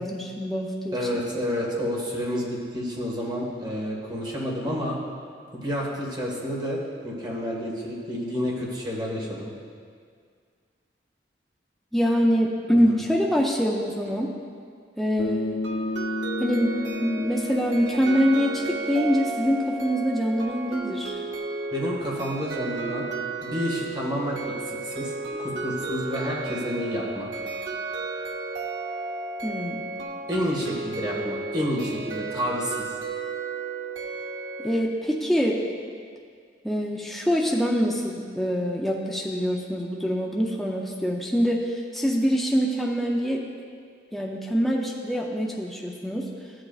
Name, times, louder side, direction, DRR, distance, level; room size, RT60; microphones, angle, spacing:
voice 1, 0.0-1.2 11.9-14.3 15.0-15.7 16.4-21.2 29.4-29.9 34.6-35.6 36.6-43.4 44.1-46.3, equal, ahead, -2 dB, 0.5 m, -25 dB
voice 2, 0.9-5.0 5.5-9.5 12.7-13.0 21.7-23.1 23.4-25.1 25.4-27.3 30.3-32.9, equal, 25° right, -3 dB, 1.6 m, -29 dB
Bass guitar, 15.2-19.6, left 2 dB, 90° left, 0.8 m, -33 dB
sound 1, 15.6-34.8, right 3 dB, 85° right, 0.9 m, -33 dB
13.5 x 7.7 x 2.4 m, 2.1 s
head